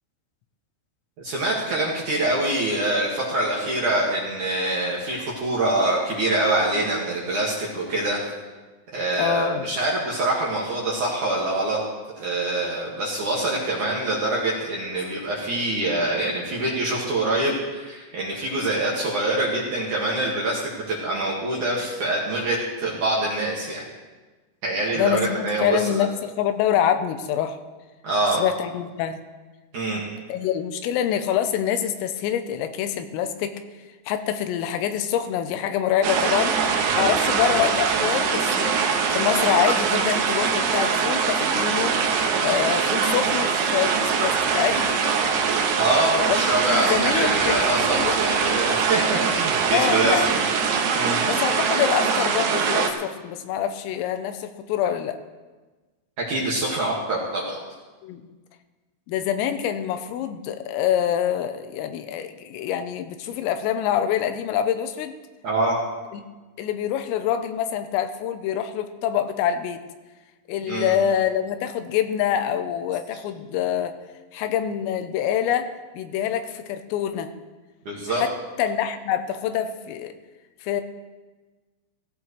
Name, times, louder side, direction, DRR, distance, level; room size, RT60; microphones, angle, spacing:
voice 1, 1.2-8.2 8.9-11.8 12.2-23.9 24.6-26.0 28.0-28.4 29.7-30.0 45.7-50.2 50.9-51.2 56.3-57.6 65.4-65.8 70.7-70.9 77.9-78.2, right 2 dB, 55° right, -4 dB, 2.4 m, -25 dB
voice 2, 9.2-9.7 25.0-27.6 28.4-29.2 30.3-33.6 34.1-36.5 37.0-42.0 42.4-45.2 46.2-46.4 46.7-48.2 49.7-50.5 51.3-55.2 58.0-58.3 59.1-65.2 66.1-66.2 66.6-69.8 70.5-73.9 74.3-77.3 78.1-78.3 78.6-80.1 80.6-80.8, left 9 dB, 90° left, 8 dB, 3.5 m, -25 dB
sound 1, 36.0-52.9, right 6 dB, 70° right, 2.5 m, -23 dB
16.5 x 16.0 x 3.2 m, 1.3 s
omnidirectional pair, 5.9 m